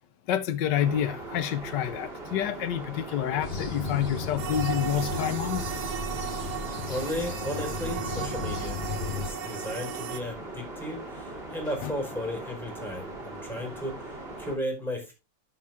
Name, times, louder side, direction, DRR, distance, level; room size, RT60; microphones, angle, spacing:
voice 1, 0.3-5.6 11.8-11.9, left 10 dB, 90° left, 1.5 m, -28 dB
sound 1, 0.7-14.6, right 2 dB, 35° right, 3.2 m, -40 dB
sound 2, 3.4-9.3, left 5 dB, 35° left, 1.2 m, -35 dB
sound 3, 4.4-10.2, right 10 dB, 65° right, 1.3 m, -36 dB
voice 2, 6.6-8.8 9.1-15.1, left 1 dB, ahead, 4.5 m, -35 dB
12.0 x 5.9 x 3.6 m
omnidirectional pair, 1.8 m